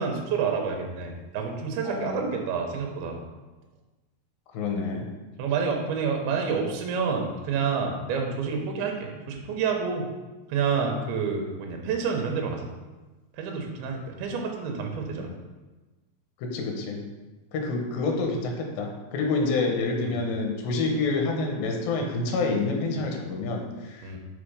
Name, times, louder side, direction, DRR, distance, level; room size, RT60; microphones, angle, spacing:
voice 1, 0.0-3.2 5.4-10.1 10.5-12.7 13.4-15.3 20.0-20.2 24.0-24.2, right 5 dB, 80° right, 2 dB, 2.7 m, -28 dB
voice 2, 1.8-2.2 4.5-5.1 15.1-15.4 16.4-17.0 17.5-24.1, left 3 dB, 75° left, 2 dB, 2.6 m, -28 dB
5.9 x 5.1 x 4.9 m, 1.2 s
omnidirectional pair, 4.6 m